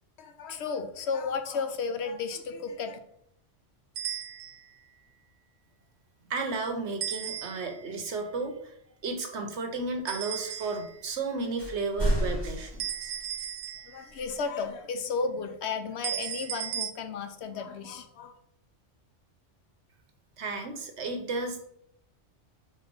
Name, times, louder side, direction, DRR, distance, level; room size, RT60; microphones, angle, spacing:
voice 1, 0.2-3.0 13.8-18.4, left 5 dB, 70° left, 8 dB, 0.9 m, -33 dB
sound 1, 4.0-4.7 7.0-7.9 10.1-11.0 12.8-14.2 16.0-16.9, right 9 dB, 90° right, 0.9 m, -36 dB
voice 2, 6.3-8.7 9.0-13.1 20.4-21.7, right 3 dB, 70° right, 5 dB, 1.2 m, -33 dB
sound 2, 11.6-13.2 14.1-14.2, equal, 40° left, 2.0 m, -30 dB
4.4 x 4.1 x 5.3 m, 0.70 s
omnidirectional pair, 1.2 m